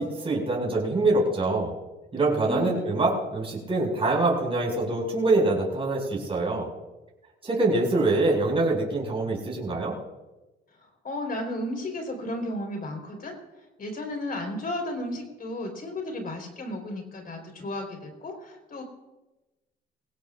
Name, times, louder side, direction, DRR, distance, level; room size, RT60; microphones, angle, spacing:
voice 1, 0.0-1.7 2.1-6.7 7.4-9.9, right 2 dB, 30° right, -3 dB, 5.5 m, -24 dB
voice 2, 2.4-3.0 10.8-18.8, left 1 dB, 45° left, 3 dB, 4.1 m, -34 dB
21.5 x 17.0 x 2.5 m, 1.1 s
cardioid pair, 90°, 20 cm